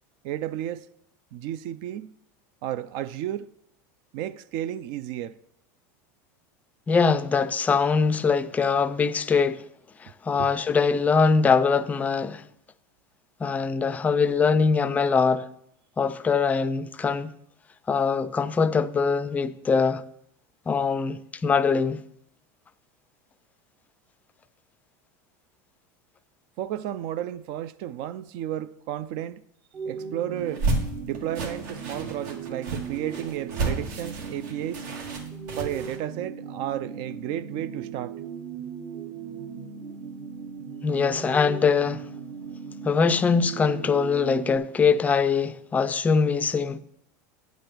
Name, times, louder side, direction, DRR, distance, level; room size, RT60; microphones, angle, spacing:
voice 1, 0.2-0.9 1.3-2.2 2.6-3.5 4.1-5.4 10.4-10.5 26.6-29.4 29.9-30.7 31.0-34.8 35.6-38.2, right 12 dB, 55° right, 0.4 m, -32 dB
voice 2, 6.9-9.6 10.0-12.4 13.4-15.5 16.0-17.3 17.9-20.0 20.7-22.0 40.8-42.1 42.8-46.8, left 5 dB, 15° left, 0.4 m, -22 dB
sound 1, 29.7-44.6, right 6 dB, 35° right, 0.7 m, -38 dB
sound 2, 30.4-36.0, right 3 dB, 75° right, 1.9 m, -31 dB
9.1 x 5.1 x 6.0 m
supercardioid pair, 135°, 10 cm